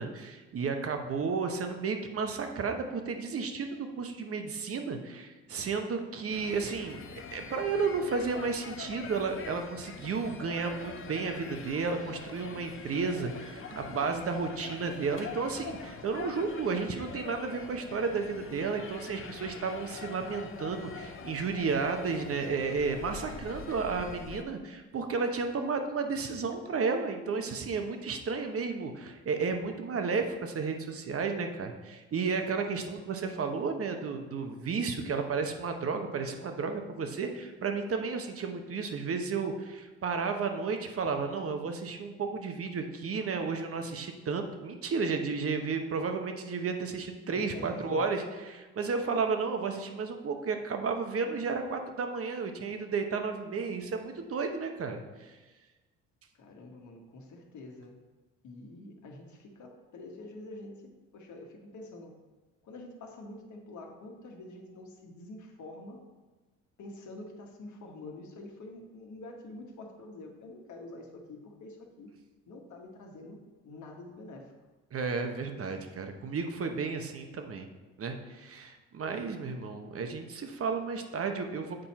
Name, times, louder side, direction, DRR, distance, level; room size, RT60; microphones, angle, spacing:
voice 1, 0.0-55.4 74.9-77.7 78.0-81.9, right 4 dB, 40° right, 5 dB, 1.0 m, -33 dB
sound 1, 6.3-24.4, left 5 dB, 40° left, 0.8 m, -44 dB
voice 2, 47.3-48.1 56.3-58.0 58.4-62.2 62.6-66.0 66.8-72.1 72.5-73.4 73.6-74.5, left 2 dB, 60° left, 2 dB, 1.4 m, -47 dB
7.8 x 4.3 x 4.3 m, 1.2 s
supercardioid pair, 65°, 34 cm